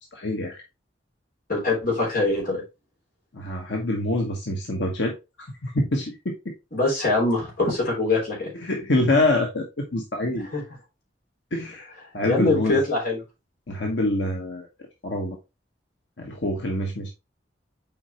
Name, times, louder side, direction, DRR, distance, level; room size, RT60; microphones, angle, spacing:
voice 1, 0.1-0.6 3.3-6.5 8.6-10.5 11.5-12.8 13.7-15.4 16.2-17.1, left 1 dB, 85° left, 1 dB, 1.2 m, -26 dB
voice 2, 1.5-2.6 6.7-8.5 10.5-10.6 12.2-13.2, left 2 dB, 55° left, -2 dB, 3.3 m, -23 dB
7.1 x 4.7 x 3.0 m, 0.25 s
head